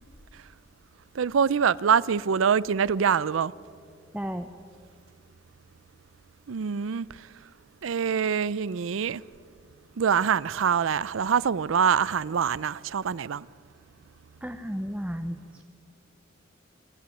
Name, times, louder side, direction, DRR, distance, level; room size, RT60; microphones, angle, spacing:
voice 1, 1.1-3.5 6.5-7.3 7.8-9.2 10.0-13.5, right 7 dB, 85° right, 0.5 m, -25 dB
voice 2, 4.1-4.5 14.4-15.6, equal, 5° right, 0.7 m, -33 dB
27.0 x 13.5 x 9.0 m
head